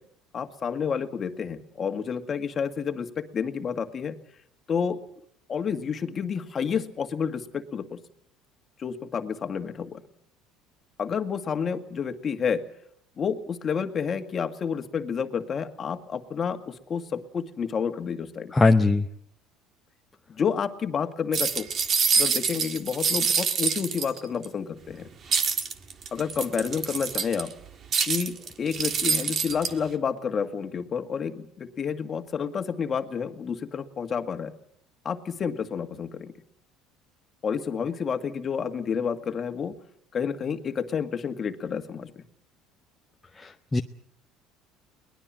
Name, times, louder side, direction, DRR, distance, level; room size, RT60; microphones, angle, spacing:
voice 1, 0.3-4.2 4.7-5.0 5.5-8.0 8.8-10.0 11.0-12.6 13.2-18.5 20.3-21.7 22.2-25.1 26.1-27.5 28.1-34.5 35.0-36.3 37.4-39.8 40.1-42.2, left 6 dB, 30° left, 8 dB, 1.9 m, -30 dB
voice 2, 18.5-19.0 43.7-43.8, left 3 dB, 10° left, 5 dB, 0.8 m, -18 dB
sound 1, 21.3-24.4 25.3-27.5 27.9-29.7, right 6 dB, 35° right, 1.7 m, -26 dB
22.5 x 20.0 x 7.5 m, 0.69 s
cardioid pair, 130°, 0 cm